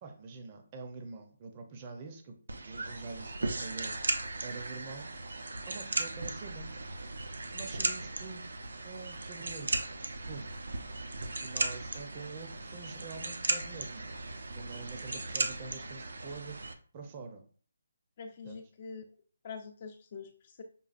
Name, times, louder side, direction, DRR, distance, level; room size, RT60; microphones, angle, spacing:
voice 1, 0.0-4.0 4.4-5.1 5.7-6.7 7.5-8.5 8.8-9.7 10.2-10.5 11.4-14.1 14.5-16.6 16.9-17.4 18.4-18.6, right 4 dB, 30° right, 5 dB, 0.6 m, -45 dB
sound 1, 2.5-16.7, right 3 dB, 80° right, 0.5 m, -37 dB
voice 2, 18.2-19.0 19.4-20.6, left 5 dB, 35° left, 5 dB, 0.4 m, -45 dB
5.3 x 2.3 x 2.5 m, 0.43 s
hypercardioid pair, 160°, 0 cm